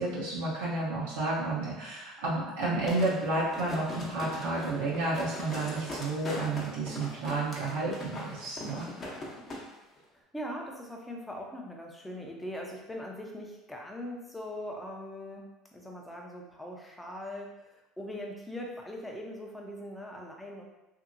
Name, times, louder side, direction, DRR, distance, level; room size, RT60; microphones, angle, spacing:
voice 1, 0.0-8.9, right 2 dB, 90° right, -7 dB, 0.8 m, -31 dB
sound 1, 2.9-9.6 10.0-10.1, left 1 dB, 35° left, 0.8 m, -41 dB
voice 2, 10.1-20.6, left 1 dB, 5° left, 0 dB, 0.6 m, -41 dB
2.8 x 2.7 x 2.6 m, 0.99 s
supercardioid pair, 100°, 0 cm